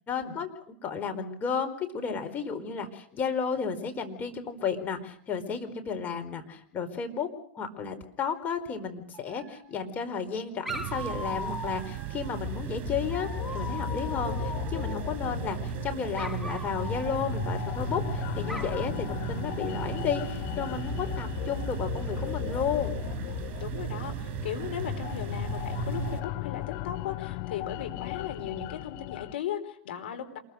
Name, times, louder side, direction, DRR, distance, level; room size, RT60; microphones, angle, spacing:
voice 1, 0.1-7.3 7.5-23.0, left 6 dB, 30° left, 5 dB, 4.6 m, -33 dB
Dog, 9.1-10.0 10.6-12.3 13.1-15.2 16.1-18.0 18.5-18.9, left 1 dB, ahead, 2.3 m, -40 dB
sound 1, 10.7-26.2, right 16 dB, 40° right, 5.6 m, -36 dB
sound 2, 12.3-29.3, left 19 dB, 45° left, 0.9 m, -36 dB
voice 2, 23.6-30.4, left 9 dB, 65° left, 6 dB, 4.7 m, -37 dB
27.5 x 21.5 x 6.5 m, 0.62 s
hypercardioid pair, 100°, 6 cm